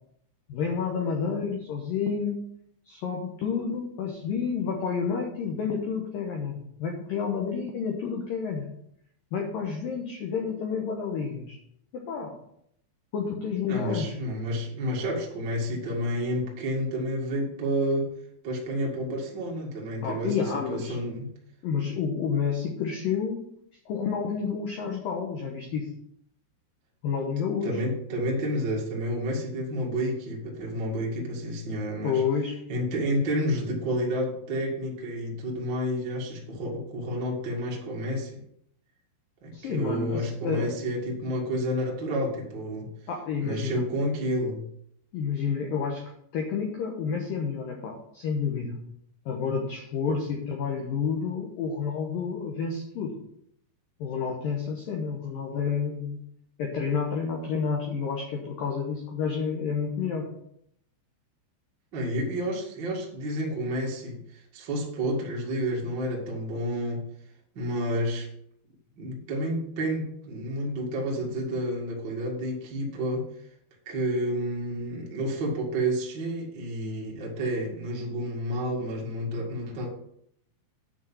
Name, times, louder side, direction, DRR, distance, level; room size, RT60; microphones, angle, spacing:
voice 1, 0.5-2.4 2.9-8.7 9.3-11.6 11.9-12.4 13.1-14.2 20.0-21.0 21.6-23.4 23.9-25.9 27.0-27.8 32.0-32.6 39.5-40.7 43.1-43.9 45.1-46.0 46.3-48.8 49.3-53.1 54.0-56.2 56.6-60.3, left 6 dB, 85° left, 1 dB, 2.0 m, -30 dB
voice 2, 13.7-18.1 18.4-21.3 27.6-32.2 32.7-38.3 39.4-42.9 43.4-44.6 61.9-67.0 67.5-68.3 69.0-73.3 73.8-79.9, equal, 55° right, -2 dB, 1.2 m, -30 dB
9.2 x 5.0 x 7.1 m, 0.72 s
omnidirectional pair, 5.8 m